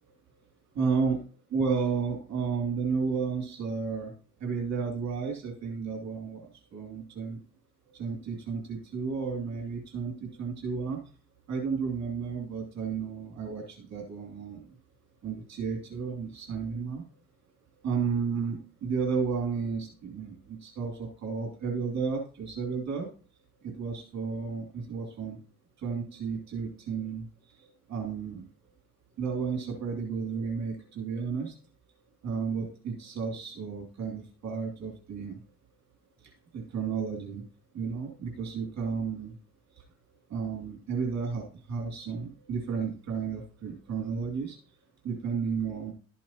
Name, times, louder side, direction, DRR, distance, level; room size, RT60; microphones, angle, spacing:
voice 1, 0.7-1.2 1.5-4.1 4.4-6.5 6.7-7.4 7.9-11.0 11.5-14.6 15.2-17.0 17.8-23.1 23.6-25.4 25.8-27.2 27.9-28.4 29.2-31.5 32.2-35.4 36.5-37.4 37.7-39.3 40.3-44.6 45.0-45.9, right 5 dB, 55° right, 0 dB, 2.8 m, -32 dB
12.5 x 7.2 x 3.0 m, 0.39 s
supercardioid pair, 85°, 32 cm